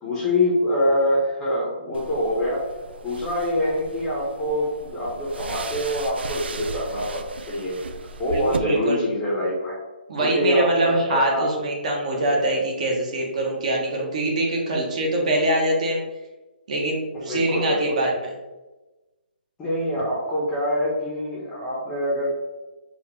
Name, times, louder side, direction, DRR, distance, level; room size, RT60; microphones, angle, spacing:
voice 1, 0.0-2.6 3.0-7.8 8.2-9.8 10.2-11.5 15.2-15.3 17.1-17.8 19.6-22.3, left 1 dB, 10° left, -5 dB, 0.8 m, -25 dB
sound 1, 1.9-8.6, right 4 dB, 85° right, 0.4 m, -37 dB
voice 2, 8.3-9.0 10.1-16.0 16.7-18.3, right 1 dB, 40° right, -1 dB, 1.0 m, -23 dB
4.2 x 2.5 x 4.3 m, 1.1 s
hypercardioid pair, 170°, 6 cm